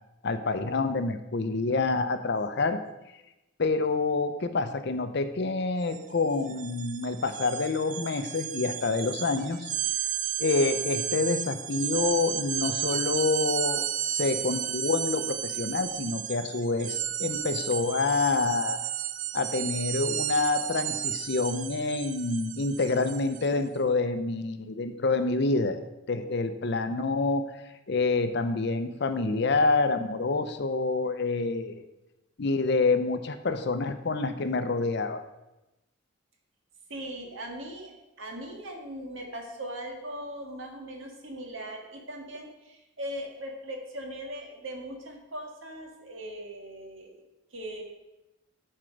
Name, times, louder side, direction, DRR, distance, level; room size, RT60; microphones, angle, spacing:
voice 1, 0.2-2.8 3.6-9.7 10.4-18.8 19.3-25.8 26.1-27.5 27.9-31.8 32.4-35.2, left 3 dB, 55° left, 9 dB, 0.6 m, -27 dB
sound 1, 5.8-6.0 6.3-23.5, right 11 dB, 40° right, 0.3 m, -33 dB
voice 2, 36.9-37.9 38.2-47.1 47.5-47.8, right 1 dB, 70° right, 2 dB, 1.6 m, -39 dB
11.0 x 4.5 x 5.1 m, 0.97 s
head